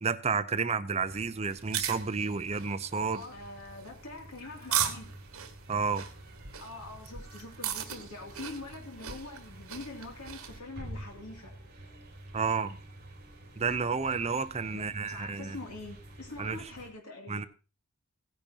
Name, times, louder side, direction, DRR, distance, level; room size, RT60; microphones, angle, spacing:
voice 1, 0.0-3.2 5.7-6.0 12.3-12.8 13.6-15.6 16.4-16.6 17.3-17.4, right 5 dB, 30° right, 0.6 m, -31 dB
sound 1, 0.9-16.9, right 1 dB, 45° right, 3.4 m, -49 dB
sound 2, 1.5-10.6, right 9 dB, 70° right, 1.5 m, -38 dB
voice 2, 3.2-5.1 6.6-11.5 14.7-17.5, left 2 dB, 85° left, 2.7 m, -44 dB
16.5 x 10.5 x 2.9 m
head